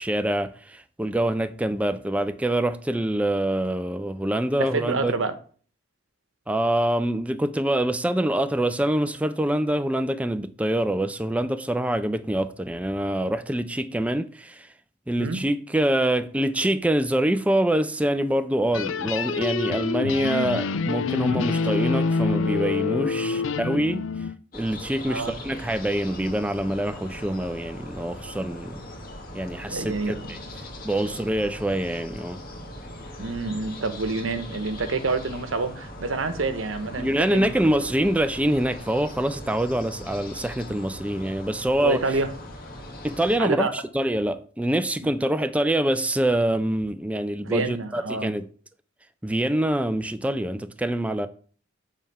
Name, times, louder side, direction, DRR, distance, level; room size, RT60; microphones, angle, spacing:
voice 1, 0.0-5.1 6.5-14.7 15.1-24.1 24.5-28.7 29.3-30.4 30.8-32.4 37.0-42.0 43.0-48.5 49.2-51.3, right 1 dB, 5° right, 0.4 m, -25 dB
voice 2, 4.6-5.3 15.2-15.4 25.1-25.3 29.7-30.4 31.0-31.2 33.2-37.5 41.8-42.3 43.4-43.7 45.2-45.3 47.4-48.3, right 3 dB, 90° right, 0.9 m, -28 dB
sound 1, 18.7-24.4, left 4 dB, 75° left, 0.4 m, -26 dB
sound 2, 24.5-43.4, left 1 dB, 50° left, 1.6 m, -40 dB
7.4 x 3.5 x 5.5 m
head